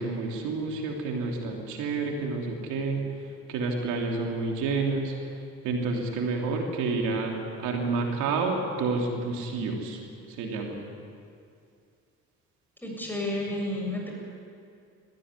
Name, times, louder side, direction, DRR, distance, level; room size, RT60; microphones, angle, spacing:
voice 1, 0.0-3.0 3.5-5.1 5.6-7.3 7.6-10.0 10.4-10.8, right 3 dB, 90° right, 1 dB, 3.2 m, -29 dB
voice 2, 12.8-14.1, left 1 dB, 5° left, -1 dB, 7.1 m, -31 dB
20.0 x 15.0 x 9.7 m, 2.4 s
cardioid pair, 95°, 29 cm